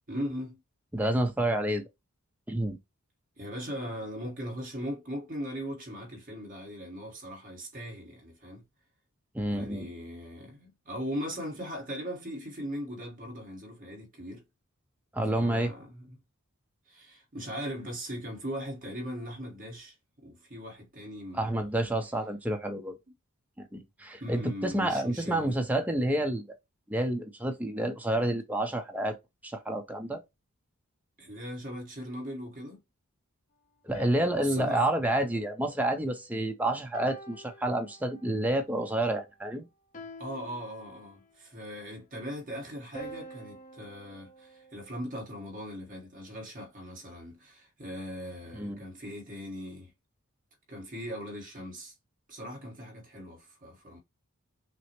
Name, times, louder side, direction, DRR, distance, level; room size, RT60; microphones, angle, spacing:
voice 1, 0.1-0.6 3.4-8.6 9.5-14.4 15.3-16.2 16.9-19.9 20.2-21.7 24.2-25.6 31.2-32.8 34.4-34.9 40.2-49.9 50.7-51.9 52.3-54.0, equal, 40° right, 1.4 m, -39 dB
voice 2, 0.9-1.8 2.5-2.8 9.3-9.9 15.1-15.7 21.3-22.9 23.6-26.5 26.9-29.2 29.4-30.2 33.8-39.7 48.5-48.8, right 1 dB, 5° right, 0.6 m, -29 dB
sound 1, 33.9-36.4 36.9-38.4 39.9-41.4 42.9-45.3, equal, 35° left, 0.7 m, -48 dB
5.9 x 2.1 x 2.9 m
head